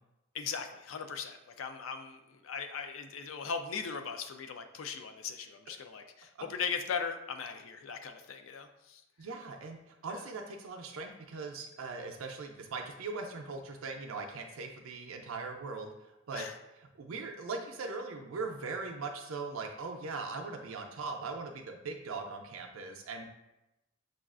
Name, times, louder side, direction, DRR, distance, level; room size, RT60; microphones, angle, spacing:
voice 1, 0.3-9.0 10.1-10.2 16.3-16.5, left 6 dB, 70° left, 6 dB, 0.4 m, -39 dB
voice 2, 9.2-15.9 16.3-16.5 17.0-23.3, right 4 dB, 80° right, 3 dB, 0.4 m, -40 dB
6.2 x 2.3 x 2.4 m, 0.93 s
head